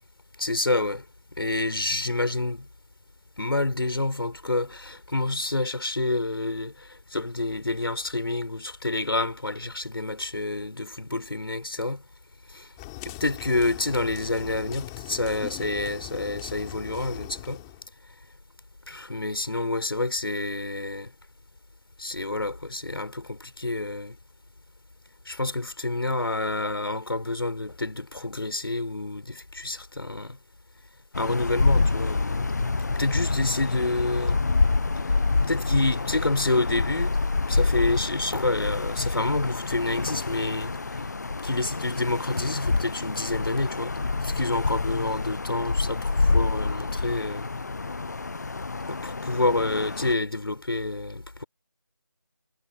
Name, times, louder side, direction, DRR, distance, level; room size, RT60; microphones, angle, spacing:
voice 1, 0.4-1.0 1.3-2.7 3.4-12.0 12.5-12.7 13.0-17.6 18.9-21.1 22.0-24.2 25.3-30.4 31.2-32.5 32.9-34.4 35.5-37.2 37.5-41.1 41.4-43.9 44.2-47.5 48.9-51.4, left 2 dB, 75° left, 5.8 m, -28 dB
sound 1, 12.8-17.8, left 24 dB, 10° left, 3.2 m, -40 dB
sound 2, 31.1-50.2, left 3 dB, 45° left, 0.6 m, -27 dB
figure-of-eight pair, 170°, 12 cm